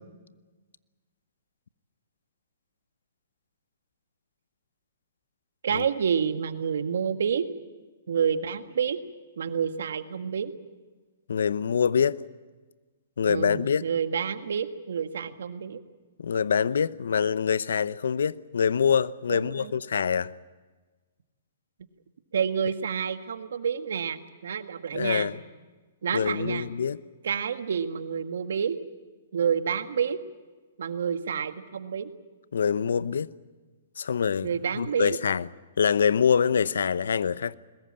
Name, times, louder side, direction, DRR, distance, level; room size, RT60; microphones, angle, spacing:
voice 1, 5.6-7.5 8.1-9.0 9.4-10.5 13.3-15.8 19.3-19.7 22.3-25.3 26.0-26.7 27.2-28.8 29.3-30.2 30.8-32.1 34.4-35.2, right 7 dB, 75° right, 1.7 m, -28 dB
voice 2, 11.3-12.2 13.2-13.8 16.2-20.3 24.9-25.4 26.1-27.0 32.5-33.3 34.0-34.5 34.8-35.5 35.8-37.5, left 7 dB, 80° left, 0.8 m, -25 dB
22.0 x 20.0 x 8.8 m
hypercardioid pair, 140°, 0 cm